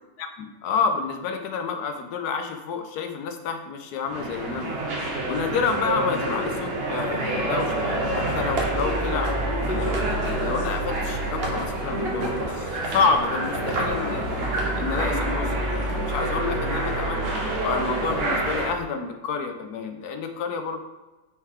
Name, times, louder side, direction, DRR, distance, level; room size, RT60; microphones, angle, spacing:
voice 1, 0.2-4.7 5.3-9.3 9.7-14.3 14.7-17.2 17.6-20.8, left 5 dB, 65° left, 5 dB, 1.1 m, -29 dB
sound 1, 4.1-18.7, right 1 dB, 45° right, 0.9 m, -28 dB
sound 2, 7.1-18.8, right 1 dB, 70° right, 0.7 m, -33 dB
6.5 x 4.5 x 3.6 m, 1.2 s
omnidirectional pair, 2.1 m